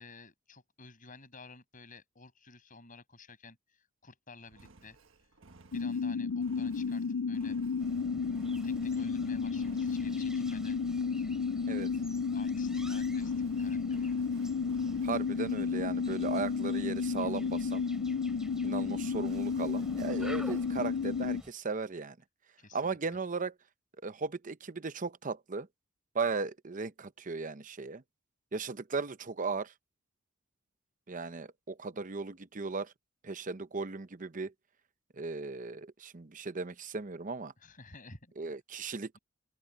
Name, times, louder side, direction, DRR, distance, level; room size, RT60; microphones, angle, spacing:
voice 1, 0.0-5.0 5.7-7.6 8.6-10.8 11.2-11.3 11.8-11.9 12.3-14.2 22.6-23.0 37.6-38.3, left 3 dB, 40° left, 7.2 m, -53 dB
Engine, 4.5-9.2 9.5-10.3 13.1-15.4 19.2-20.7, right 3 dB, 70° right, 1.5 m, -58 dB
sound 1, 5.7-21.4, left 5 dB, 70° left, 0.5 m, -32 dB
sound 2, 7.8-21.5, equal, 5° right, 3.2 m, -51 dB
voice 2, 15.0-17.8 18.6-22.2 22.7-23.5 24.0-25.7 26.1-28.0 28.5-29.7 31.1-32.9 33.2-34.5 35.2-37.5 38.4-39.2, right 4 dB, 40° right, 0.8 m, -36 dB
open air
head